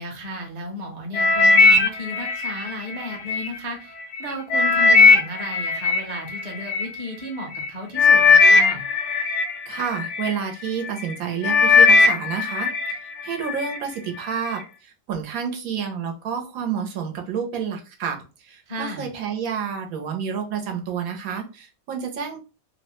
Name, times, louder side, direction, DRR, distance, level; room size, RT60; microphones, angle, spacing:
voice 1, 0.0-8.8 18.7-19.1, left 1 dB, 40° right, 1 dB, 0.7 m, -34 dB
sound 1, 1.1-3.5 4.0-6.9 7.6-7.7 8.0-10.3 10.9-11.1 11.4-13.0 13.3-13.8 14.4-14.5, left 4 dB, 65° left, 0.8 m, -17 dB
voice 2, 9.7-12.7 13.2-22.4, right 7 dB, 90° right, 3 dB, 1.2 m, -29 dB
2.9 x 2.1 x 2.9 m, 0.32 s
omnidirectional pair, 1.4 m